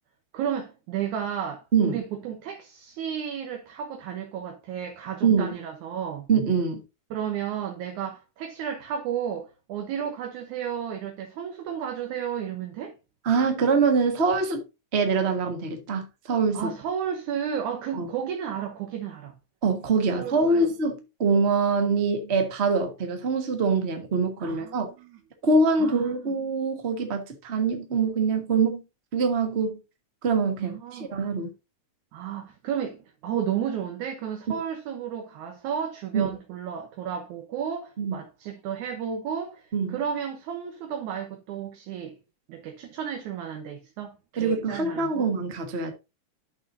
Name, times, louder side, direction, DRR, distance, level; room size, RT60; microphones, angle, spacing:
voice 1, 0.3-6.3 7.1-12.9 16.5-19.3 20.1-20.7 24.4-25.2 25.8-26.4 30.6-31.1 32.1-42.2 42.5-45.3, right 8 dB, 75° right, 2.5 m, -33 dB
voice 2, 5.2-5.6 6.3-6.8 13.2-14.6 14.9-16.7 17.9-18.1 19.6-24.9 25.4-28.8 29.1-29.8 30.2-31.5 36.1-36.3 38.0-38.2 39.7-40.0 44.4-45.9, right 4 dB, 55° right, 0.7 m, -24 dB
11.5 x 6.0 x 2.6 m
omnidirectional pair, 3.6 m